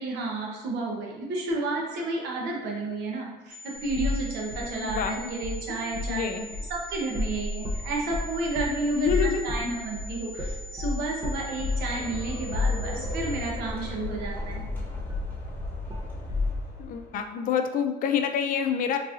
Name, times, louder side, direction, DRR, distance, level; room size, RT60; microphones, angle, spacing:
voice 1, 0.0-6.3 6.6-14.6, right 2 dB, 80° right, -1 dB, 0.8 m, -31 dB
sound 1, 3.5-13.5, left 1 dB, 50° right, 1.2 m, -44 dB
sound 2, 3.9-4.2 4.5-5.6 5.9-6.2 6.5-13.3 13.6-13.7 14.2-16.5, left 3 dB, 20° right, 0.6 m, -31 dB
voice 2, 4.7-5.4 5.7-5.8 6.1-6.4 8.9-9.4 13.0-13.1 16.8-19.0, left 7 dB, 55° left, 6 dB, 0.4 m, -27 dB
sound 3, 11.2-17.2, left 2 dB, 10° left, 1.1 m, -37 dB
3.8 x 2.7 x 2.4 m, 1.1 s
cardioid pair, 110°, 17 cm